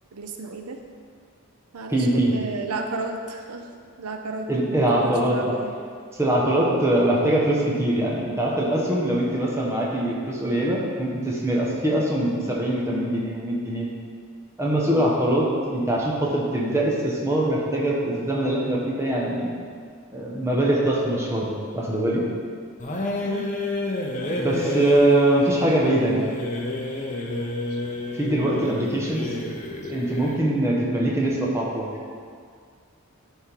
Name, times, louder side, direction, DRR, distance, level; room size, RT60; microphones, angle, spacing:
voice 1, 0.1-0.8 1.7-3.7 4.0-5.8 6.4-6.6 12.9-13.2 23.2-23.5 27.7-27.8 28.3-28.6 29.8-29.9, right 3 dB, 90° right, 4 dB, 0.6 m, -34 dB
voice 2, 1.9-2.3 4.5-5.5 6.2-13.9 14.6-19.6 20.1-22.2 24.2-26.3 28.1-29.3 29.9-31.9, right 1 dB, 10° right, -4 dB, 1.0 m, -23 dB
sound 1, 22.8-30.5, left 1 dB, 35° left, 0.7 m, -30 dB
10.5 x 3.6 x 4.6 m, 2.1 s
head